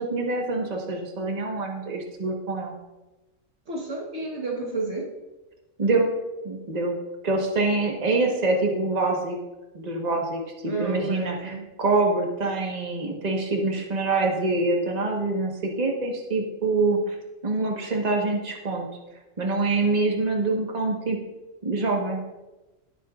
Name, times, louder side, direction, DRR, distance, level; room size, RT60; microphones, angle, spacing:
voice 1, 0.0-2.7 5.8-6.1 6.4-7.0 7.2-9.4 9.7-17.2 17.4-18.9 19.4-21.2 21.6-22.2, right 3 dB, 35° right, 0 dB, 1.5 m, -25 dB
voice 2, 3.7-5.1 10.7-11.6, right 3 dB, 60° right, 0 dB, 1.7 m, -31 dB
18.5 x 8.1 x 2.5 m, 1.1 s
omnidirectional pair, 1.3 m